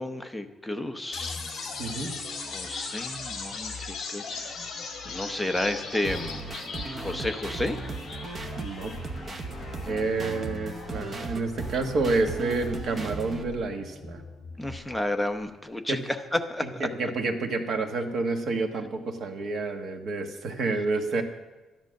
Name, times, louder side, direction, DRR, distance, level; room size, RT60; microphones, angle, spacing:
voice 1, 0.0-1.4 1.9-2.0 2.4-4.6 5.0-7.8 9.8-10.1 14.6-17.1, left 1 dB, 5° left, 5 dB, 0.8 m, -32 dB
sound 1, 1.1-15.1, left 4 dB, 45° left, 2.6 m, -39 dB
voice 2, 1.8-2.1 8.6-8.9 9.9-14.2 15.9-16.0 16.8-21.2, right 3 dB, 50° right, 5 dB, 1.5 m, -29 dB
sound 2, 6.0-13.4, right 3 dB, 25° right, 0.9 m, -37 dB
12.5 x 11.0 x 6.4 m, 1.2 s
cardioid pair, 175°, 0 cm